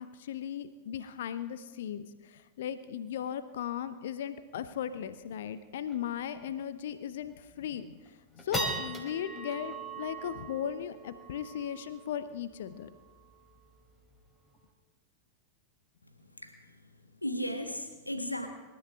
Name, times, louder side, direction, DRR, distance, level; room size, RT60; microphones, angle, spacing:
voice 1, 0.0-8.0 8.4-12.9, left 9 dB, 60° left, 13 dB, 0.8 m, -37 dB
sound 1, 5.4-5.5 5.9-6.1 6.6-6.7 7.3-7.6 8.0-14.6, right 2 dB, 15° left, 4.4 m, -41 dB
voice 2, 16.0-18.5, equal, 85° left, 5 dB, 1.8 m, -37 dB
26.5 x 13.5 x 3.7 m, 1.2 s
figure-of-eight pair, 90°, 0 cm